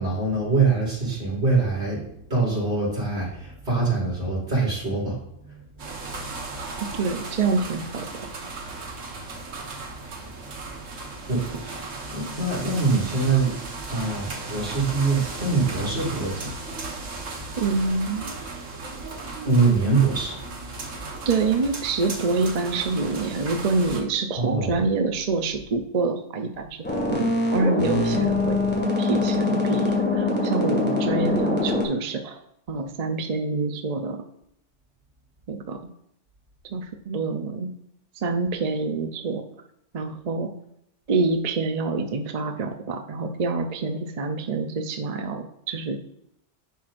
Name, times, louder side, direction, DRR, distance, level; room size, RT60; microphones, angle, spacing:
voice 1, 0.0-2.0 2.3-5.8 10.5-10.6 11.3-11.6 12.0-16.9 17.5-17.6 19.4-21.1 24.4-24.8, right 3 dB, 65° right, -5 dB, 3.6 m, -24 dB
sound 1, 5.8-24.0, right 3 dB, 90° right, 1.6 m, -36 dB
voice 2, 6.8-8.1 17.6-18.4 21.3-26.8 27.1-28.6 29.0-32.4 32.7-34.2 35.5-35.8 36.7-37.7 38.2-39.5 39.9-40.6 41.1-46.0, right 3 dB, 40° right, 5 dB, 0.6 m, -26 dB
sound 2, 26.8-31.9, left 3 dB, 10° left, 1.7 m, -23 dB
10.5 x 6.0 x 2.5 m, 0.76 s
omnidirectional pair, 1.3 m